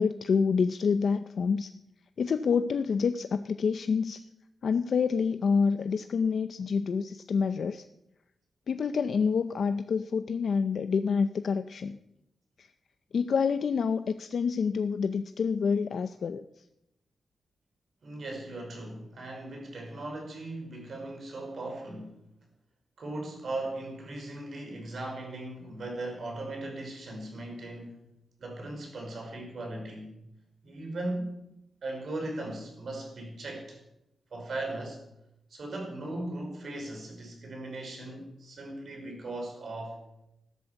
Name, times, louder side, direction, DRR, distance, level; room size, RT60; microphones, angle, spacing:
voice 1, 0.0-1.7 2.2-4.2 4.6-7.9 8.7-12.0 12.6-12.7 13.1-16.4, left 5 dB, 55° left, 10 dB, 0.6 m, -27 dB
voice 2, 18.0-22.2 23.0-27.9 28.4-30.2 30.6-31.3 31.8-33.8 34.3-35.0 35.5-40.0, right 2 dB, 50° right, 1 dB, 5.5 m, -38 dB
15.0 x 12.5 x 7.1 m, 0.86 s
wide cardioid pair, 165°, 0 cm